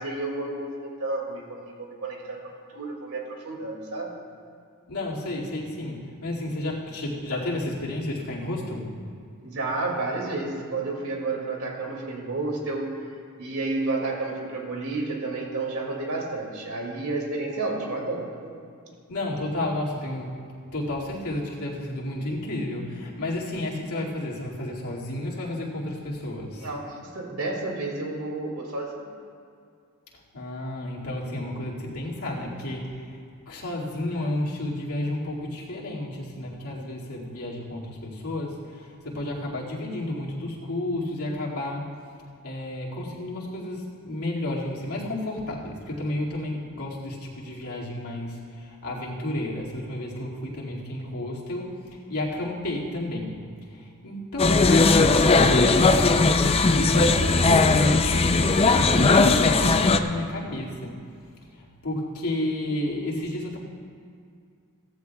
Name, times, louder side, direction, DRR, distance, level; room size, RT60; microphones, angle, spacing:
voice 1, 0.0-4.2 9.4-12.9 13.4-18.3 26.5-28.9, right 2 dB, 85° right, 0 dB, 2.4 m, -31 dB
voice 2, 4.9-8.9 19.1-20.3 20.7-26.7 30.3-33.2 33.5-41.9 42.4-53.4 53.7-61.0 61.5-63.6, left 1 dB, 85° left, -5 dB, 2.3 m, -31 dB
sound 1, 54.4-60.0, left 3 dB, 25° left, 0.5 m, -18 dB
17.0 x 14.5 x 2.3 m, 2.3 s
head